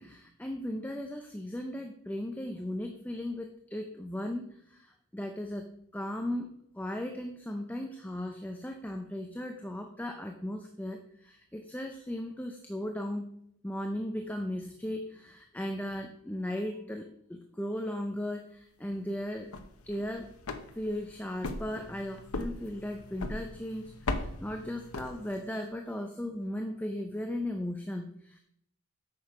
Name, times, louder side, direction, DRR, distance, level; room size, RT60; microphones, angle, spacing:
voice 1, 0.0-6.5 6.8-13.3 13.6-19.5 19.8-20.3 20.7-28.4, left 1 dB, 5° left, 4 dB, 0.5 m, -37 dB
sound 1, 19.3-25.6, left 2 dB, 85° left, 0.9 m, -39 dB
8.5 x 6.4 x 4.7 m, 0.72 s
head